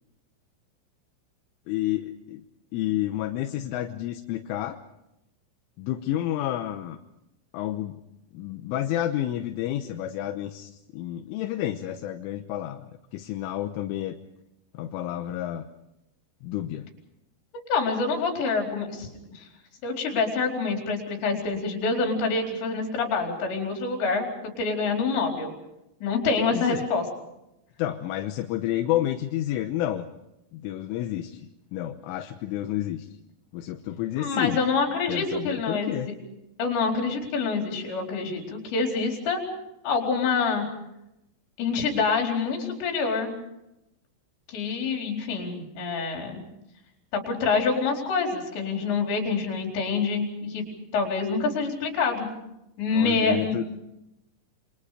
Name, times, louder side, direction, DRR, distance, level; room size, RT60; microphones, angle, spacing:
voice 1, 1.7-2.4 2.7-4.8 5.8-7.0 7.5-8.0 8.3-14.2 14.8-15.7 16.4-16.9 26.5-26.9 27.8-30.1 30.5-31.4 31.7-33.1 33.5-34.6 35.1-36.1 52.9-53.7, left 13 dB, 85° left, 6 dB, 3.6 m, -30 dB
voice 2, 17.7-19.1 19.3-19.5 19.8-24.3 24.6-25.5 26.0-27.0 34.2-36.1 36.6-39.4 39.8-40.7 41.6-43.3 44.5-46.4 47.1-50.7 50.9-52.3 52.8-53.6, left 4 dB, 65° left, 2 dB, 6.5 m, -26 dB
28.5 x 25.0 x 5.0 m, 0.87 s
omnidirectional pair, 5.6 m